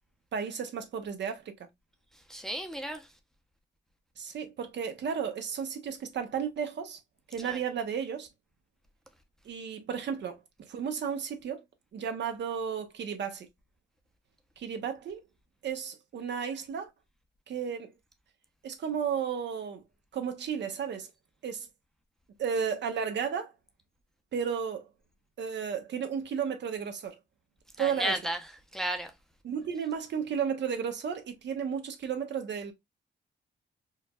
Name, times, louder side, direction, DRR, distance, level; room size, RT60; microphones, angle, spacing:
voice 1, 0.3-1.7 4.2-7.0 7.3-8.3 9.4-11.6 11.9-13.5 14.6-15.2 15.6-16.9 17.5-17.9 18.6-19.8 20.1-21.1 21.4-21.7 22.4-23.5 24.3-24.9 25.4-27.2 27.8-28.2 29.4-32.7, right 7 dB, 70° right, 0.8 m, -33 dB
voice 2, 2.3-3.0 7.4-7.6 27.8-28.4 28.7-29.1, right 1 dB, ahead, 0.6 m, -33 dB
4.5 x 2.3 x 2.3 m
cardioid pair, 100°, 19 cm